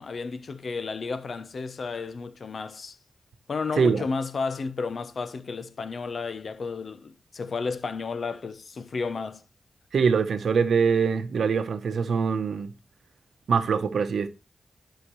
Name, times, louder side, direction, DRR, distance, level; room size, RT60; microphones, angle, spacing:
voice 1, 0.0-3.0 3.5-9.4, left 4 dB, 65° left, 0.7 m, -32 dB
voice 2, 9.9-12.7 13.5-14.3, right 6 dB, 85° right, 0.8 m, -23 dB
11.5 x 5.7 x 3.1 m
cardioid pair, 65°, 0 cm